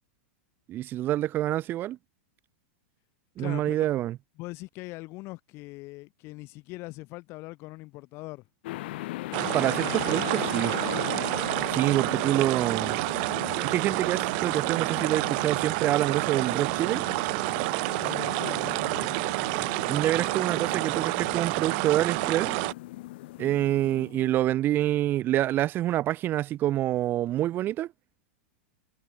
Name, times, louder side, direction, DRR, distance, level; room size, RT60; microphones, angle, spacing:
voice 1, 0.7-2.0 3.4-4.2 9.5-10.7 11.7-13.0 13.6-17.0 19.9-22.5 23.4-27.9, right 13 dB, 35° right, 2.6 m, -27 dB
voice 2, 3.4-3.9 4.4-8.5 18.0-19.1, left 22 dB, 45° left, 4.0 m, -41 dB
sound 1, 8.6-24.4, left 18 dB, 60° left, 2.4 m, -39 dB
sound 2, 9.3-22.7, right 32 dB, 50° right, 2.3 m, -29 dB
hypercardioid pair, 135°, 6 cm